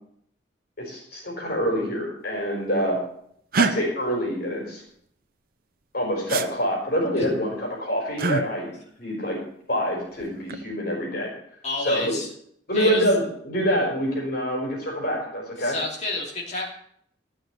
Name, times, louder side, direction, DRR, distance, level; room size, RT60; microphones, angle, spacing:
voice 1, 0.8-3.0 3.6-4.8 5.9-8.7 9.0-9.4 9.7-11.3 11.8-12.1 12.7-15.7, equal, 55° left, -2 dB, 4.4 m, -26 dB
sound 1, 3.5-3.7 6.3-6.5 8.2-8.4 10.2-10.6, right 4 dB, 55° right, 0.9 m, -23 dB
voice 2, 11.6-12.3 12.7-13.0 15.6-16.6, left 2 dB, 40° left, -2 dB, 2.9 m, -29 dB
14.0 x 6.2 x 8.0 m, 0.68 s
head